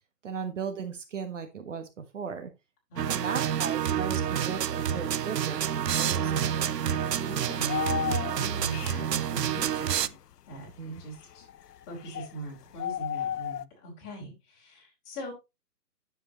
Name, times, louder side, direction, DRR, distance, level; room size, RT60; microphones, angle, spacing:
voice 1, 0.2-2.5 3.1-6.7 10.8-11.0, right 6 dB, 50° right, 8 dB, 1.3 m, -37 dB
sound 1, 3.0-10.1, right 9 dB, 75° right, 0.7 m, -28 dB
voice 2, 7.1-10.1 10.5-11.5 11.9-15.3, right 2 dB, 20° left, -3 dB, 5.2 m, -41 dB
sound 2, 7.4-12.4 12.7-13.6, left 9 dB, 70° left, 0.7 m, -35 dB
9.9 x 7.7 x 3.0 m, 0.24 s
hypercardioid pair, 155°, 49 cm